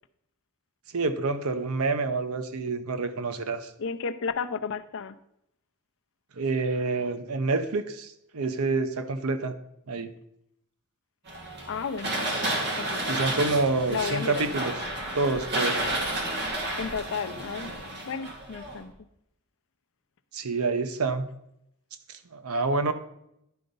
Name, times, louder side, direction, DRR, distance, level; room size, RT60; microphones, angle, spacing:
voice 1, 0.9-3.7 6.4-9.5 9.9-10.1 13.1-14.7 15.1-15.9 20.3-21.3 22.1-22.9, right 3 dB, 80° right, 10 dB, 0.7 m, -27 dB
voice 2, 3.8-5.2 11.7-12.3 12.8-13.0 13.9-14.5 16.8-17.7 18.1-18.9, left 5 dB, 60° left, 10 dB, 0.5 m, -32 dB
sound 1, 11.3-18.9, right 1 dB, 50° right, 1.7 m, -31 dB
10.5 x 3.9 x 5.3 m, 0.79 s
head